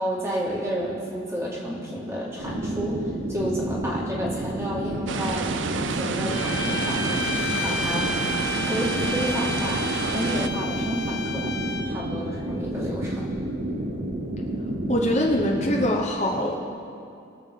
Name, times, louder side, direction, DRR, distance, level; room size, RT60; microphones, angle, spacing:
voice 1, 0.0-7.3 7.6-8.2 8.7-13.3, equal, 15° right, -5 dB, 2.0 m, -31 dB
sound 1, 2.4-15.9, right 1 dB, 60° right, 0.8 m, -30 dB
sound 2, 5.1-10.5, right 5 dB, 75° right, 0.5 m, -30 dB
sound 3, 6.3-12.0, left 3 dB, 65° left, 1.4 m, -31 dB
voice 2, 14.9-16.5, left 1 dB, 35° left, -1 dB, 0.9 m, -23 dB
22.0 x 7.4 x 3.7 m, 2.5 s
head